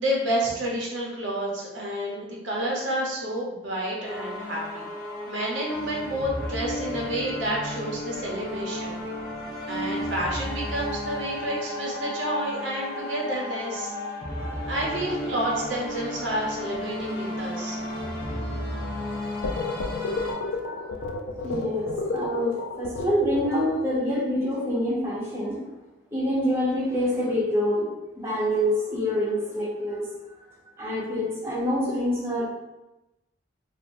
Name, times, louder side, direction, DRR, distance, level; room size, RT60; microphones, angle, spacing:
voice 1, 0.0-4.9 5.3-9.0 9.7-13.9 14.7-17.8, right 1 dB, 90° right, -3 dB, 0.8 m, -29 dB
sound 1, 4.0-20.3, left 1 dB, 50° left, 0.7 m, -33 dB
sound 2, 19.4-23.9, left 3 dB, 85° left, 0.3 m, -31 dB
voice 2, 20.4-20.8 21.4-25.5 26.1-27.8 28.2-30.0 30.8-32.5, equal, 15° right, -7 dB, 0.7 m, -26 dB
3.4 x 2.1 x 2.6 m, 1.0 s
head